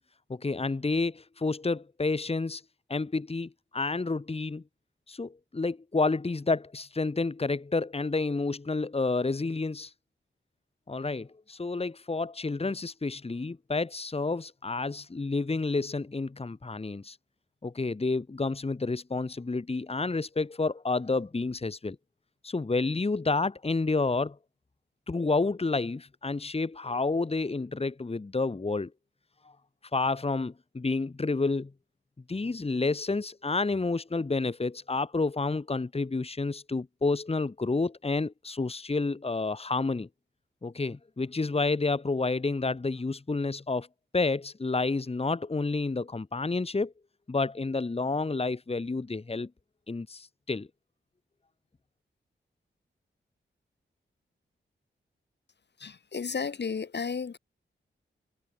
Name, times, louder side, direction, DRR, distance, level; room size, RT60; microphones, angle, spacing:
voice 1, 0.3-2.6 2.9-4.6 5.1-9.9 10.9-17.2 17.6-22.0 22.4-24.4 25.1-28.9 29.9-31.7 32.3-40.1 40.6-43.9 44.1-46.9 47.3-49.5 49.9-50.7, left 3 dB, 30° left, 1.9 m, -30 dB
voice 2, 55.8-57.4, left 5 dB, 60° left, 2.4 m, -33 dB
wide cardioid pair, 80°, 20 cm